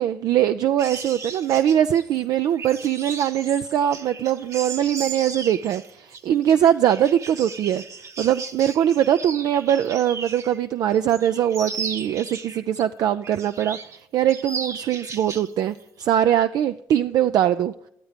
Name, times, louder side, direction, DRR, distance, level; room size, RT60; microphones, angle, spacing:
voice 1, 0.0-7.8 8.2-17.7, right 10 dB, 65° right, 10 dB, 0.4 m, -22 dB
sound 1, 0.8-10.6 10.9-12.8 13.2-14.0 14.3-15.5 15.8-16.0, right 5 dB, 45° right, 0.9 m, -36 dB
11.0 x 7.9 x 5.0 m, 0.77 s
supercardioid pair, 65°, 7 cm